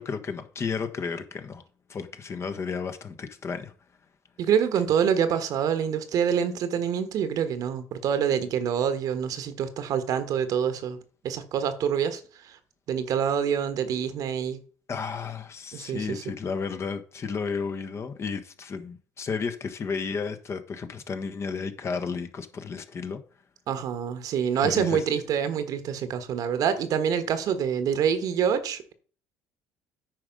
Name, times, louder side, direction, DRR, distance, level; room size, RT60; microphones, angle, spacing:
voice 1, 0.0-1.6 1.9-3.7 14.9-23.2 24.6-25.0, left 5 dB, 40° left, 1.2 m, -33 dB
voice 2, 4.4-11.0 11.2-12.2 12.9-14.6 15.7-16.2 23.7-28.9, right 8 dB, 60° right, 1.3 m, -26 dB
9.3 x 5.1 x 5.3 m
hypercardioid pair, 70°, 7 cm